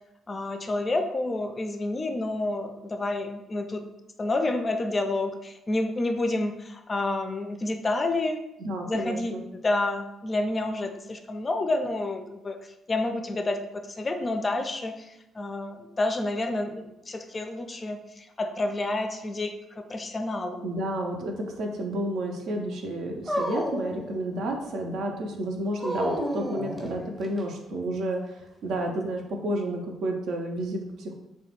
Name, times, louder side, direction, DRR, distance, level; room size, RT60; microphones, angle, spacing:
voice 1, 0.3-3.8 4.2-8.4 8.9-12.6 12.9-20.6, left 2 dB, 30° left, 6 dB, 0.4 m, -29 dB
voice 2, 8.6-9.4 20.6-31.1, right 1 dB, 60° right, 2 dB, 0.4 m, -31 dB
Dog, 23.3-24.7 25.8-27.4, equal, 5° right, 0.7 m, -31 dB
3.1 x 2.2 x 2.9 m, 0.88 s
figure-of-eight pair, 45°, 0 cm